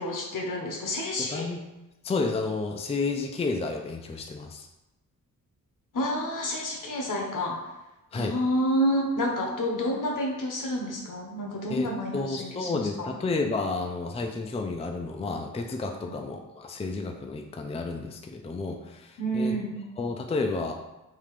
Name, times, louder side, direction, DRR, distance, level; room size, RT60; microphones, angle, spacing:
voice 1, 0.0-1.5 5.9-7.6 8.1-13.1 16.0-16.2 19.2-19.8, equal, 70° left, 0 dB, 1.1 m, -29 dB
voice 2, 1.2-1.6 2.0-4.7 8.1-8.4 11.7-19.6 20.0-20.7, left 3 dB, 20° left, 3 dB, 0.4 m, -31 dB
3.7 x 2.8 x 4.8 m, 0.99 s
wide cardioid pair, 105°, 33 cm